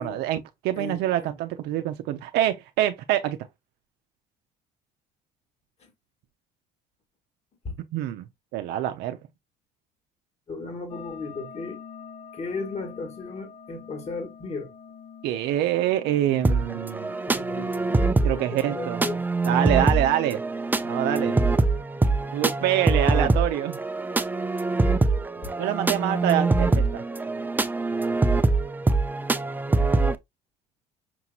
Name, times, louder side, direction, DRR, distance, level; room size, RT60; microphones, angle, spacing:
voice 1, 0.0-3.4 7.9-8.2 8.5-9.2 15.2-17.1 18.2-19.0 19.4-20.4 20.8-21.4 22.3-23.8 25.6-27.0, right 12 dB, 75° right, 0.6 m, -25 dB
voice 2, 0.7-1.3 5.8-5.9 7.6-7.8 10.5-11.8 12.3-14.7 16.5-16.8 17.3-19.2, left 3 dB, 40° left, 1.8 m, -36 dB
sound 1, 10.9-17.3, left 7 dB, 65° left, 3.0 m, -45 dB
sound 2, 16.4-30.2, right 3 dB, 10° right, 0.4 m, -24 dB
6.0 x 2.9 x 2.3 m
supercardioid pair, 95°, 17 cm